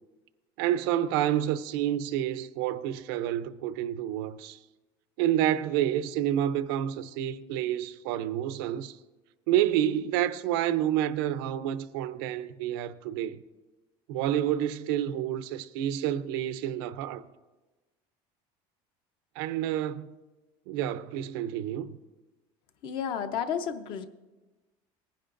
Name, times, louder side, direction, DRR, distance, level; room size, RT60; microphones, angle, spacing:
voice 1, 0.6-4.6 5.2-9.0 9.5-13.4 14.1-17.2 19.4-20.1 20.7-21.9, right 11 dB, 90° right, 0.6 m, -29 dB
voice 2, 22.8-24.1, left 8 dB, 45° left, 0.6 m, -31 dB
19.5 x 10.5 x 2.5 m
cardioid pair, 180°, 12 cm